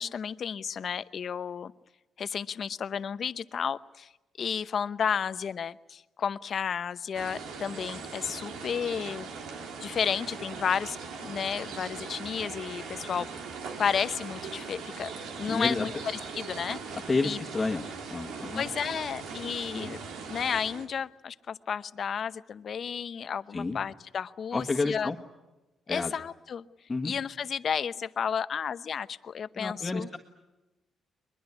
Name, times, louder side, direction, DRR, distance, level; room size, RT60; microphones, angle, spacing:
voice 1, 0.0-1.7 2.2-4.1 4.4-9.3 9.8-11.0 11.2-13.3 13.8-16.8 17.2-17.4 18.6-20.0 20.3-25.1 25.9-26.6 27.0-30.1, left 7 dB, 55° left, 14 dB, 0.8 m, -32 dB
sound 1, 7.1-20.9, right 5 dB, 85° right, 3.1 m, -40 dB
voice 2, 15.5-15.9 17.1-17.8 18.1-18.6 19.7-19.9 23.5-23.8 24.5-25.2 25.9-26.2 26.9-27.1 29.6-30.2, left 3 dB, 25° left, 1 dB, 1.7 m, -30 dB
22.5 x 22.0 x 9.9 m, 1.0 s
cardioid pair, 95°, 0 cm